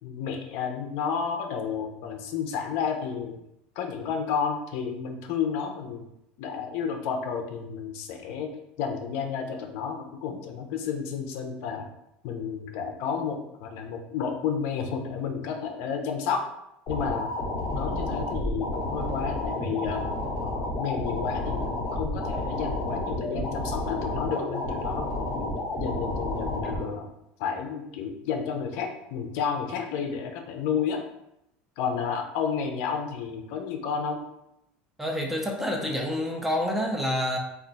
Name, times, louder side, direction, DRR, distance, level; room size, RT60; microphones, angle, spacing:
voice 1, 0.0-3.4 3.8-6.0 6.4-8.5 8.8-11.9 12.2-16.5 16.9-17.3 17.7-20.0 20.4-25.5 25.8-27.1 27.4-31.0 31.8-34.2, left 6 dB, 65° left, 4 dB, 0.4 m, -31 dB
sound 1, 16.9-26.9, left 1 dB, 30° left, 0.9 m, -31 dB
voice 2, 35.0-37.4, equal, 5° right, 0 dB, 0.4 m, -28 dB
2.4 x 2.2 x 3.8 m, 0.82 s
cardioid pair, 150°, 4 cm